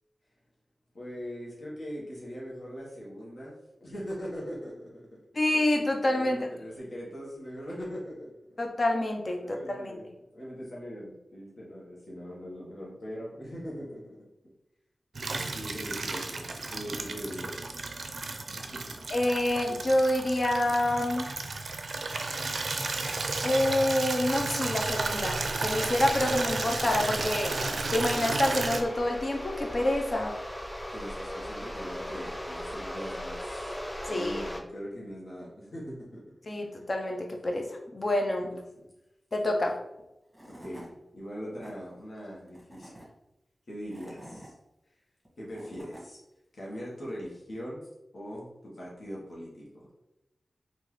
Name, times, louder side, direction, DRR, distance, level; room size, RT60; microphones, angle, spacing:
voice 1, 0.9-3.5 3.8-5.2 6.0-8.6 9.4-10.1 10.3-14.3 15.3-17.6 18.5-18.9 30.9-33.8 34.1-36.2 36.8-36.9 38.5-38.6 40.5-43.1 43.7-44.5 45.4-46.2 46.5-47.8 48.1-49.9, equal, 70° left, -5 dB, 1.2 m, -41 dB
voice 2, 5.4-6.4 8.6-10.0 19.1-21.2 23.4-30.4 34.1-34.4 36.5-37.7 37.9-38.5 39.3-39.8, left 1 dB, 50° left, 2 dB, 0.7 m, -27 dB
Water tap faucet / Liquid, 15.2-28.8, right 3 dB, 75° right, 0.4 m, -33 dB
sound 1, 24.8-34.6, equal, 10° left, 0.5 m, -39 dB
Tools / Wood, 40.0-40.1 40.3-40.9 41.4-41.7 42.5-43.1 43.7-44.5 45.2-46.0, right 1 dB, 5° right, 1.4 m, -48 dB
3.7 x 2.6 x 3.1 m, 0.92 s
cardioid pair, 55°, 0 cm